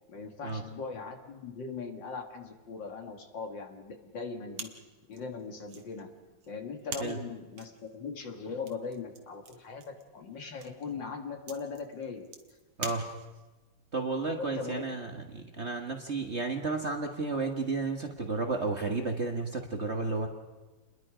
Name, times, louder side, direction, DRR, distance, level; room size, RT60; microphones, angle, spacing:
voice 1, 0.1-4.7 5.1-6.1 6.5-12.3 14.4-14.8, left 4 dB, 60° left, 4 dB, 2.6 m, -40 dB
sound 1, 4.5-13.6, right 5 dB, 75° right, 2.5 m, -46 dB
voice 2, 12.8-13.1 13.9-20.3, right 3 dB, 35° right, 3 dB, 1.5 m, -32 dB
28.5 x 21.5 x 5.0 m, 1.2 s
omnidirectional pair, 2.3 m